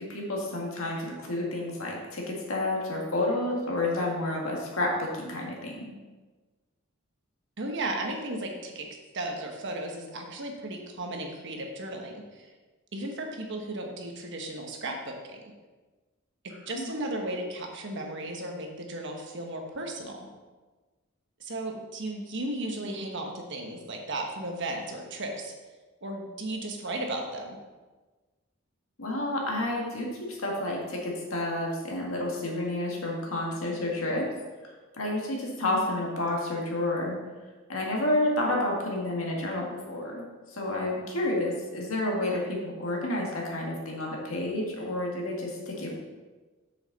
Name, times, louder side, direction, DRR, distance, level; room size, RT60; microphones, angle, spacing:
voice 1, 0.0-5.9 16.7-16.9 29.0-34.3 35.0-37.2 37.7-40.3 40.6-46.0, left 1 dB, 85° left, -2 dB, 1.9 m, -30 dB
voice 2, 7.6-8.9 9.1-12.5 12.9-15.4 16.4-20.3 21.4-25.5 26.0-27.6, right 1 dB, 60° right, 2 dB, 1.3 m, -35 dB
7.8 x 6.5 x 4.1 m, 1.3 s
head